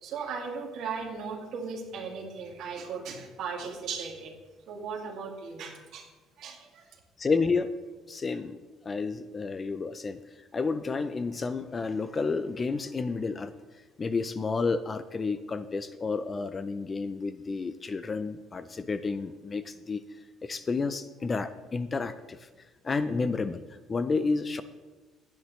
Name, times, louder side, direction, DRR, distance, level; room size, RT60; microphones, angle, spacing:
voice 1, 0.0-4.4 4.7-6.0 6.4-6.8, right 5 dB, 60° right, 1 dB, 2.3 m, -37 dB
voice 2, 7.2-7.7 8.1-8.6 8.8-10.2 10.5-13.5 14.0-20.0 20.4-22.4 22.8-23.6 23.9-24.6, left 4 dB, 25° left, 12 dB, 0.5 m, -30 dB
16.0 x 10.5 x 3.2 m, 1.2 s
cardioid pair, 150°, 0 cm